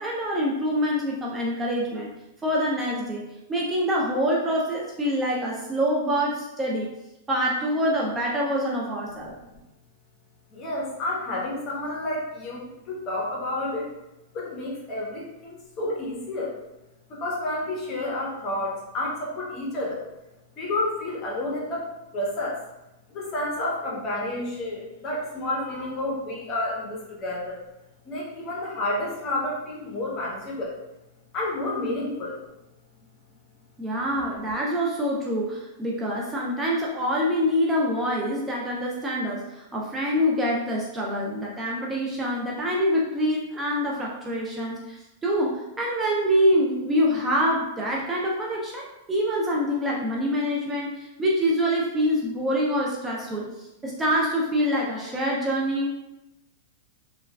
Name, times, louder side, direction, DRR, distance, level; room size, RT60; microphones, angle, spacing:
voice 1, 0.0-2.1 2.4-3.2 3.5-6.9 7.3-9.4 33.8-55.9, equal, 15° right, -3 dB, 0.4 m, -25 dB
voice 2, 10.5-13.9 14.3-16.5 17.1-20.0 20.6-22.6 23.1-27.6 28.0-30.7 31.3-32.4, left 1 dB, 35° left, -3 dB, 0.9 m, -30 dB
3.0 x 2.3 x 2.3 m, 0.95 s
hypercardioid pair, 130°, 0 cm